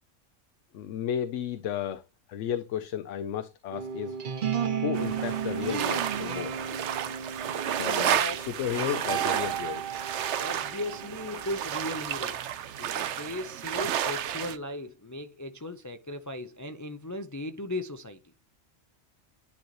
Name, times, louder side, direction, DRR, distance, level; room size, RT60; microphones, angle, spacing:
voice 1, 0.7-2.0 2.3-4.2 4.8-6.6 7.7-10.0, left 10 dB, 85° left, 0.9 m, -33 dB
sound 1, 3.7-11.8, right 7 dB, 50° right, 0.8 m, -34 dB
sound 2, 4.9-14.6, right 10 dB, 75° right, 0.9 m, -32 dB
voice 2, 10.4-12.5 12.8-18.2, left 1 dB, 30° left, 0.3 m, -37 dB
10.5 x 3.9 x 3.1 m
omnidirectional pair, 1.2 m